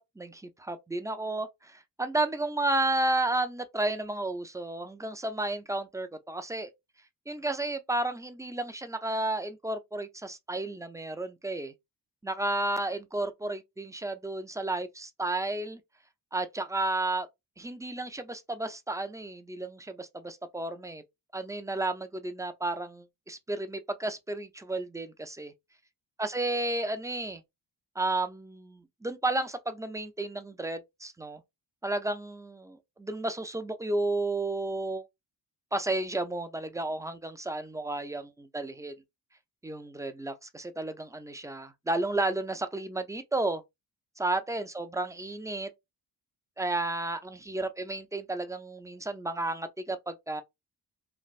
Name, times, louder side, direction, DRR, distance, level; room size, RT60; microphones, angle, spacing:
voice 1, 0.0-6.7 7.3-11.7 12.2-15.8 16.3-17.3 17.6-21.0 21.3-25.5 26.2-27.4 28.0-31.4 31.8-35.1 35.7-38.9 39.6-43.6 44.2-45.7 46.6-50.4, right 2 dB, 10° right, 0.4 m, -32 dB
3.2 x 2.5 x 2.4 m
cardioid pair, 80°, 42 cm